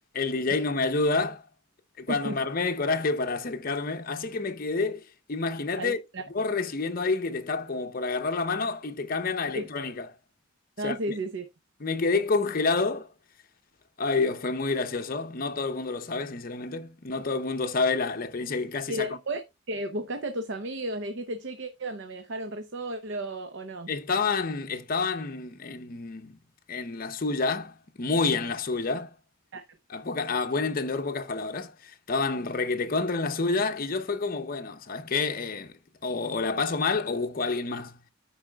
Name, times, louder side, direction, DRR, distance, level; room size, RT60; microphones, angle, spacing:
voice 1, 0.1-1.4 2.0-6.0 6.3-10.1 10.8-11.0 11.8-13.1 14.0-19.1 23.9-26.4 26.7-29.1 29.9-35.8 36.0-38.0, left 3 dB, 45° left, 0.7 m, -28 dB
voice 2, 2.1-2.4 5.8-6.2 9.5-9.7 10.8-11.4 18.9-19.4 19.7-23.9 29.5-29.6, right 1 dB, 60° right, 0.7 m, -33 dB
13.5 x 4.7 x 2.3 m
head